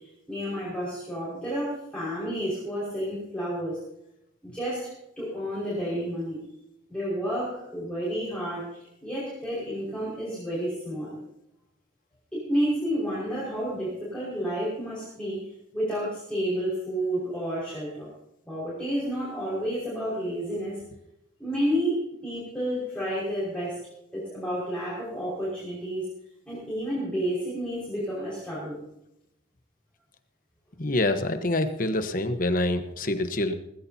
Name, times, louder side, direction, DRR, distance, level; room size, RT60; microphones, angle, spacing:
voice 1, 0.3-3.8 4.4-4.9 5.2-6.4 6.9-11.2 12.3-15.4 15.7-18.1 18.5-20.8 21.4-21.9 22.2-23.8 24.1-26.1 26.5-28.8, equal, 5° left, -9 dB, 5.3 m, -30 dB
voice 2, 30.8-33.5, left 2 dB, 45° left, 8 dB, 1.1 m, -26 dB
18.5 x 16.0 x 2.8 m, 0.82 s
head